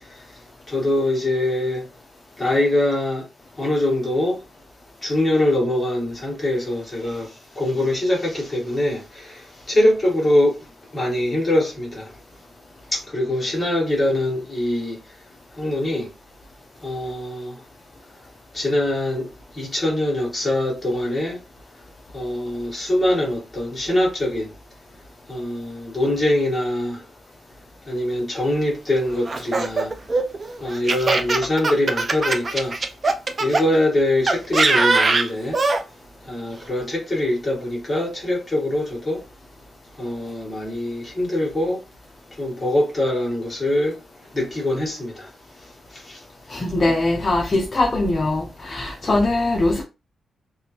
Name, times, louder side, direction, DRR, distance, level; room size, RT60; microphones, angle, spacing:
voice 1, 0.7-1.9 2.4-3.2 3.6-4.4 5.0-10.6 10.9-12.1 12.9-15.0 15.6-16.1 16.8-17.6 18.5-19.3 19.5-21.4 22.1-24.5 25.3-27.0 27.9-30.0 30.6-32.8 33.4-35.6 36.3-39.2 40.0-41.8 42.4-44.0 44.3-45.3 45.9-46.2, left 1 dB, 15° left, 1.4 m, -23 dB
Laughter, 29.3-33.6 34.3-35.8, right 3 dB, 30° right, 0.3 m, -21 dB
voice 2, 46.5-49.8, left 2 dB, 30° left, 0.5 m, -21 dB
3.4 x 2.4 x 2.9 m
wide cardioid pair, 165°, 0 cm